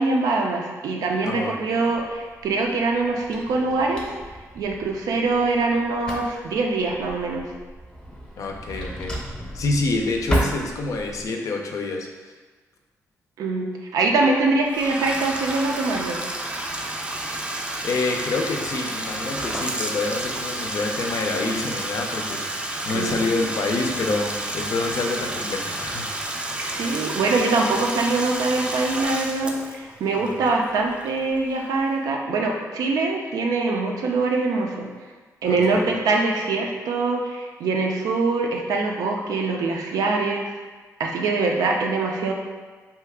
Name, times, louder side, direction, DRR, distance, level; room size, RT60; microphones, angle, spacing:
voice 1, 0.0-4.1 4.5-7.5 13.4-16.2 22.9-23.2 26.5-34.9 35.4-40.6 41.0-42.3, right 3 dB, 85° right, 1 dB, 0.4 m, -23 dB
voice 2, 1.2-1.9 8.4-9.2 9.5-12.1 17.8-26.4 30.1-30.4 35.5-35.8, left 3 dB, 65° left, 2 dB, 0.4 m, -27 dB
Drawer open or close, 1.9-11.3, right 1 dB, 10° left, 0.7 m, -33 dB
Bathtub (filling or washing), 14.7-31.4, right 1 dB, 15° right, 0.4 m, -31 dB
2.8 x 2.3 x 3.5 m, 1.4 s
cardioid pair, 75°, 6 cm